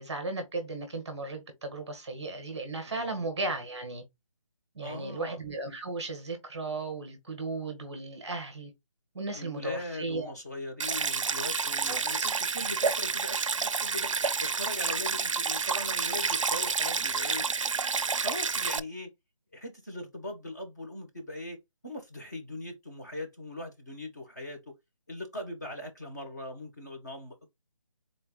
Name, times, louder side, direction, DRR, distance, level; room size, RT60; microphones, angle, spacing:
voice 1, 0.0-4.0 4.7-8.7 9.1-10.3 11.8-12.3, right 2 dB, 10° right, 1.2 m, -36 dB
voice 2, 2.8-3.3 4.8-5.4 9.3-14.1 14.4-17.5 18.1-19.1 19.5-21.6 21.8-24.7 25.1-27.5, left 1 dB, 30° left, 1.4 m, -40 dB
Stream, 10.8-18.8, right 5 dB, 65° right, 0.4 m, -29 dB
4.5 x 3.9 x 2.3 m
figure-of-eight pair, 180°, 17 cm